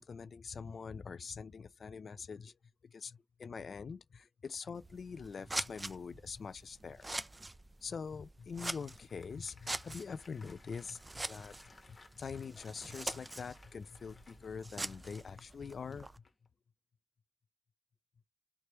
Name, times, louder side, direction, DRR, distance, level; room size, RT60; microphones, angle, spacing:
voice 1, 0.0-2.5 2.8-7.2 7.8-11.5 11.9-16.1, left 5 dB, 80° left, 0.3 m, -44 dB
Scissors, 4.7-16.2, right 2 dB, 25° right, 0.3 m, -45 dB
Applause, 8.4-16.5, left 3 dB, 40° left, 1.0 m, -63 dB
3.3 x 3.0 x 2.9 m
wide cardioid pair, 120°, 0 cm